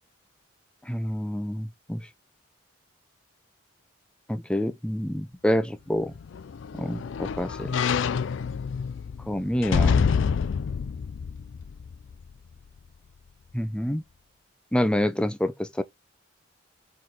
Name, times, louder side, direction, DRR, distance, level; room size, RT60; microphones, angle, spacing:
voice 1, 0.8-2.0 4.3-6.1 6.8-7.7 9.3-10.1 13.5-14.0 14.7-15.8, equal, 5° left, 0.5 m, -27 dB
sound 1, 6.0-12.3 12.8-12.9, left 6 dB, 70° left, 0.4 m, -27 dB
4.5 x 4.3 x 5.0 m
head